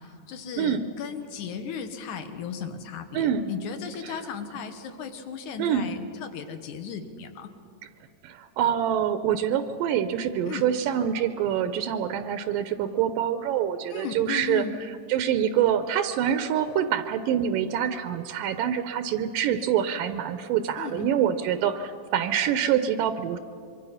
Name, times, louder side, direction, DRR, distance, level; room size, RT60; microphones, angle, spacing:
voice 1, 0.0-7.5 10.5-10.7 13.9-14.7 20.8-21.1, left 7 dB, 70° left, 8 dB, 2.5 m, -36 dB
voice 2, 3.1-3.5 4.0-4.2 5.6-5.9 8.2-14.6 15.1-23.4, right 9 dB, 80° right, 10 dB, 2.4 m, -26 dB
25.5 x 23.5 x 5.7 m, 2.3 s
omnidirectional pair, 3.9 m